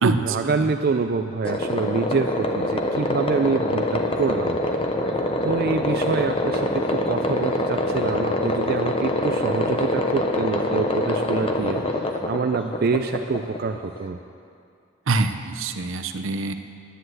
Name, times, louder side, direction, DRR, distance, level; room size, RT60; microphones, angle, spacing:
voice 1, 0.0-4.6 5.4-14.2, right 4 dB, 45° right, 6 dB, 0.4 m, -26 dB
sound 1, 1.4-14.1, left 1 dB, 25° left, 0.8 m, -25 dB
voice 2, 15.1-16.5, right 3 dB, 75° right, 8 dB, 0.7 m, -24 dB
10.0 x 10.0 x 7.7 m, 2.4 s
head